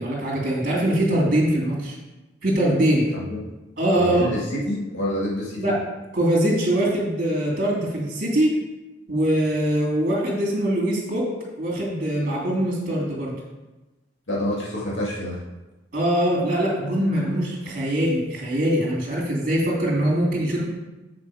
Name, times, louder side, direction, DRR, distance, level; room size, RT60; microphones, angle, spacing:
voice 1, 0.0-2.0 2.4-3.1 3.8-4.3 5.6-5.8 6.1-8.5 9.1-11.3 11.6-13.3 15.9-20.7, right 1 dB, 45° right, -3 dB, 2.8 m, -22 dB
voice 2, 3.9-5.7 14.3-15.4, left 1 dB, 75° left, -5 dB, 2.1 m, -27 dB
7.6 x 6.6 x 4.9 m, 1.1 s
head